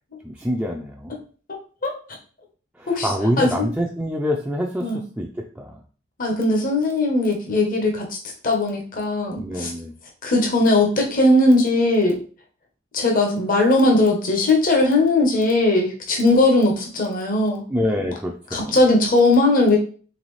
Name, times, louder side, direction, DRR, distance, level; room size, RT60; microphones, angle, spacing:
voice 1, 0.2-1.1 2.8-5.8 9.4-9.9 17.7-18.8, equal, 5° right, 0 dB, 0.4 m, -26 dB
voice 2, 6.2-8.1 8.4-9.7 10.2-12.2 12.9-17.6 18.5-19.8, left 2 dB, 50° left, 1 dB, 1.0 m, -19 dB
4.0 x 3.5 x 3.1 m, 0.40 s
head